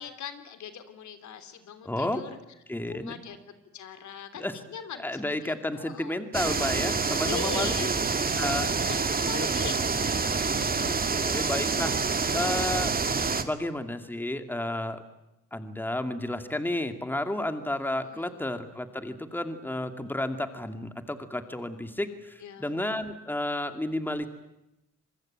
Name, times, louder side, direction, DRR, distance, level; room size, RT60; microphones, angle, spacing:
voice 1, 0.0-2.3 2.8-3.4 3.7-6.2 7.2-11.5 18.0-18.3 22.4-22.7, left 7 dB, 70° left, 10 dB, 3.3 m, -41 dB
voice 2, 1.8-2.2 2.7-3.2 4.3-4.6 5.0-7.8 8.4-8.7 10.8-11.9 12.3-12.9 13.4-15.0 15.5-24.3, left 1 dB, 5° left, 8 dB, 2.4 m, -32 dB
sound 1, 6.3-13.4, right 4 dB, 30° right, 2.2 m, -27 dB
26.5 x 21.0 x 9.0 m, 0.89 s
cardioid pair, 90°, 30 cm